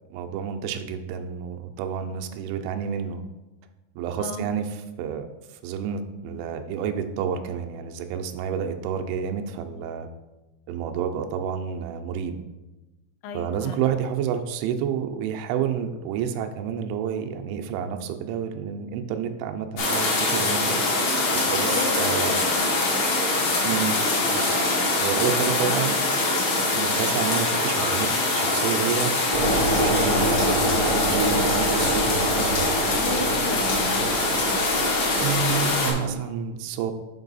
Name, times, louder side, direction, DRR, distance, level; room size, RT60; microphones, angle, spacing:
voice 1, 0.1-3.2 4.0-5.3 5.6-10.1 10.7-12.4 13.3-20.8 21.5-22.4 23.6-24.0 24.3-24.6 25.0-26.0 26.7-32.7 35.2-36.9, right 8 dB, 85° right, 6 dB, 3.0 m, -29 dB
voice 2, 13.2-13.8 21.5-23.1 25.6-25.7 33.0-34.6, left 5 dB, 80° left, 4 dB, 2.9 m, -35 dB
sound 1, 19.8-35.9, left 2 dB, 60° left, 1.8 m, -24 dB
sound 2, 29.3-36.1, right 1 dB, 60° right, 0.6 m, -26 dB
7.3 x 5.3 x 4.0 m, 1.1 s
omnidirectional pair, 5.3 m